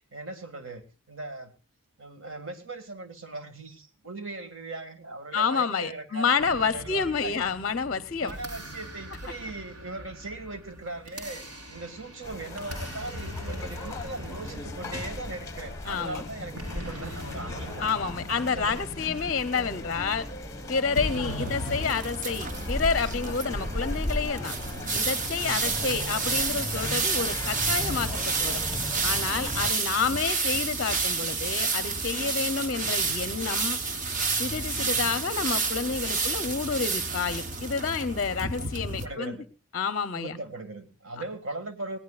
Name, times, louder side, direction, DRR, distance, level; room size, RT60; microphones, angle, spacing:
voice 1, 0.0-1.5 2.0-7.3 8.2-11.5 11.7-17.8 18.5-18.8 21.2-21.6 23.7-24.0 25.8-26.0 29.9-30.2 32.6-33.2 34.7-35.2 38.6-38.7 39.0-39.5 40.1-42.0, right 2 dB, 60° right, 7 dB, 1.9 m, -39 dB
voice 2, 5.3-8.3 15.8-16.3 17.8-20.3 20.7-24.5 24.9-28.6 29.0-33.8 34.3-39.4 39.7-40.4, left 5 dB, 40° left, 13 dB, 0.6 m, -29 dB
sound 1, 6.4-21.8, equal, 85° right, 4.5 m, -41 dB
sound 2, 12.2-29.7, left 1 dB, 15° left, 1.1 m, -37 dB
sound 3, 21.3-39.1, right 4 dB, 35° right, 1.0 m, -30 dB
20.0 x 17.5 x 2.4 m, 0.30 s
head